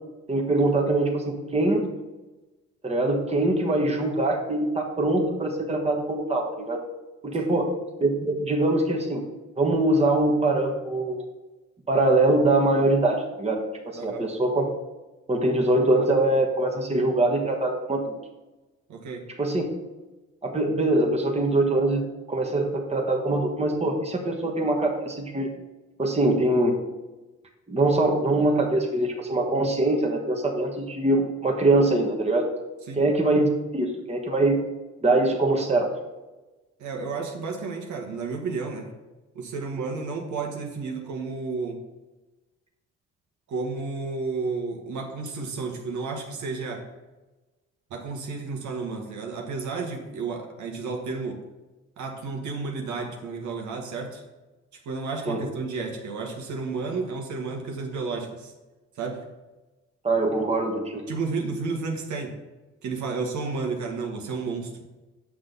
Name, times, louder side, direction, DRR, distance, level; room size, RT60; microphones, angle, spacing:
voice 1, 0.3-1.8 2.8-6.8 7.2-7.7 8.0-9.2 9.6-11.2 11.9-13.6 14.0-14.7 15.3-18.2 19.4-19.6 20.4-25.5 26.0-26.7 27.7-32.5 33.0-34.6 35.0-35.9 55.3-55.4 60.0-61.0, right 2 dB, 20° right, 1 dB, 1.3 m, -23 dB
voice 2, 18.9-19.2 32.9-33.0 36.8-38.9 39.3-41.8 43.5-46.8 47.9-51.4 52.0-54.2 54.8-58.5 59.0-59.2 61.1-62.4 62.8-64.7, right 4 dB, 75° right, 1 dB, 1.5 m, -32 dB
7.6 x 6.1 x 3.9 m, 1.1 s
cardioid pair, 90°, 30 cm